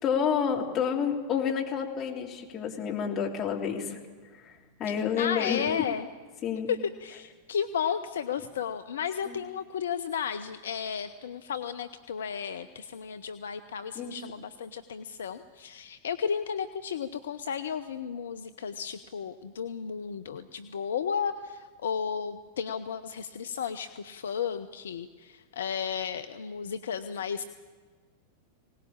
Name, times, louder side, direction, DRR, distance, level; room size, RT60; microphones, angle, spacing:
voice 1, 0.0-4.0 4.4-4.5 4.8-5.6 6.4-6.7 9.3-9.4 13.9-14.2, left 7 dB, 30° left, 0 dB, 3.3 m, -29 dB
voice 2, 5.2-6.1 6.7-27.4, left 7 dB, 65° left, 9 dB, 0.7 m, -33 dB
21.0 x 18.5 x 8.9 m, 1.5 s
figure-of-eight pair, 90°, 0 cm